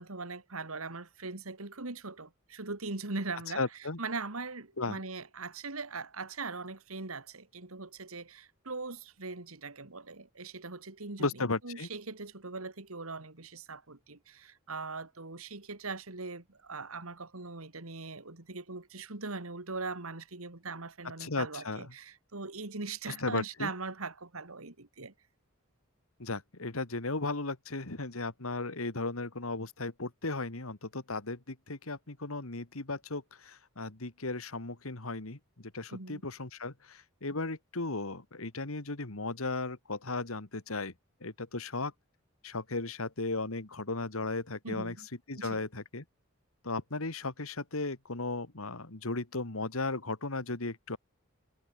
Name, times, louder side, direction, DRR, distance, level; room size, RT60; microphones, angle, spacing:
voice 1, 0.0-3.6 4.0-25.1 35.9-36.2 44.6-45.1 45.4-45.6, right 3 dB, 85° right, 2.4 m, -41 dB
voice 2, 3.5-4.0 4.8-5.0 11.2-11.9 21.2-21.9 23.1-23.7 26.2-40.9 41.2-41.9 42.4-44.9 45.3-46.0 46.6-51.0, left 3 dB, 80° left, 2.2 m, -36 dB
head